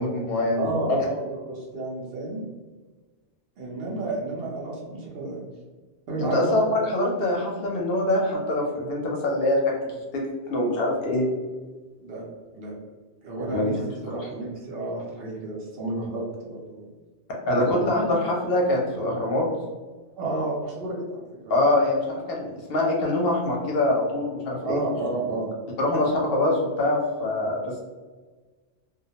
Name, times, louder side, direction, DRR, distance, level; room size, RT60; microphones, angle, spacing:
voice 1, 0.0-1.0 6.3-10.2 10.5-11.3 13.5-13.7 17.5-19.5 21.5-24.8 25.8-27.8, left 1 dB, 65° left, -1 dB, 0.7 m, -24 dB
voice 2, 0.6-2.5 3.6-5.4 6.1-6.6 12.0-12.2 12.5-12.7 13.2-16.9 17.5-17.9 20.2-21.6 24.6-25.5 25.9-26.0, right 2 dB, 65° right, -3 dB, 0.8 m, -31 dB
2.2 x 2.1 x 2.7 m, 1.3 s
omnidirectional pair, 1.1 m